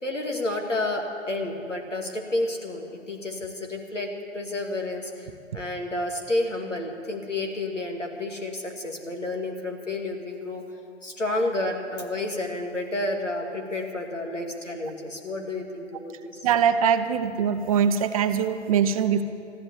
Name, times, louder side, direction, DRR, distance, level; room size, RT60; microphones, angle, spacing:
voice 1, 0.0-5.3 5.5-10.6 11.0-16.5, left 2 dB, 85° left, 2 dB, 2.3 m, -30 dB
voice 2, 16.4-19.2, right 7 dB, 30° right, 10 dB, 0.7 m, -22 dB
14.0 x 11.5 x 8.3 m, 2.8 s
figure-of-eight pair, 125°, 36 cm